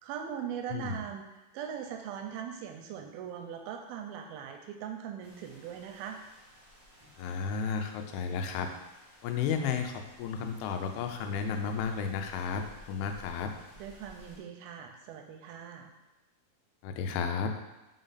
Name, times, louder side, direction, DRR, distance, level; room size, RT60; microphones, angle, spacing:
voice 1, 0.0-6.2 13.8-15.9, right 8 dB, 85° right, 4 dB, 2.3 m, -40 dB
voice 2, 0.7-1.0 7.2-8.7 9.2-13.5 16.8-17.5, left 6 dB, 90° left, 5 dB, 2.6 m, -33 dB
sound 1, 5.2-14.4, equal, 20° right, 0.6 m, -56 dB
5.2 x 4.5 x 4.0 m, 1.0 s
omnidirectional pair, 4.4 m